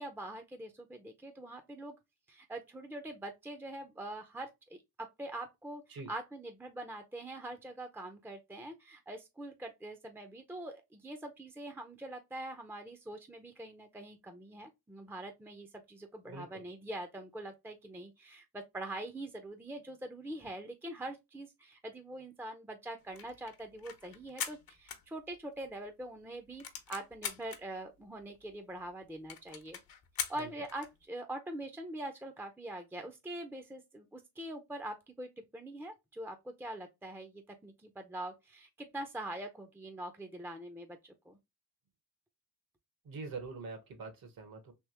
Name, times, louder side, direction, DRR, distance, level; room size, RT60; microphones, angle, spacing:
voice 1, 0.0-2.0 2.3-29.8 30.3-41.4, right 1 dB, 5° right, 0.6 m, -44 dB
voice 2, 16.3-16.6 30.4-30.5 43.0-44.7, right 4 dB, 65° right, 1.4 m, -44 dB
sound 1, 23.0-25.7 26.0-26.1 26.3-27.6 28.2-28.3 28.5-28.6 28.9-29.0 29.3-31.0, left 8 dB, 65° left, 0.9 m, -42 dB
3.5 x 2.9 x 2.9 m
cardioid pair, 85°, 38 cm